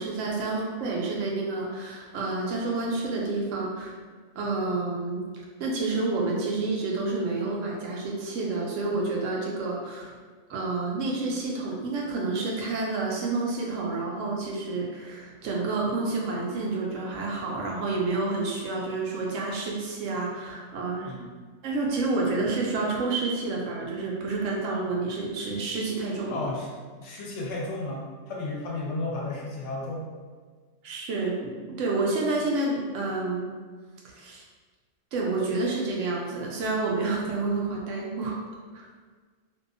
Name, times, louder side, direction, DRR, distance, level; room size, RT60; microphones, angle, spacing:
voice 1, 0.0-3.9 4.4-5.2 5.6-10.1 10.5-21.1 21.6-26.5 30.8-33.5 34.1-34.4 35.1-38.4 38.7-38.9, right 3 dB, 75° right, -2 dB, 0.9 m, -29 dB
voice 2, 26.3-26.7 27.0-30.1, left 2 dB, 70° left, -3 dB, 0.9 m, -33 dB
2.7 x 2.3 x 2.4 m, 1.5 s
omnidirectional pair, 1.3 m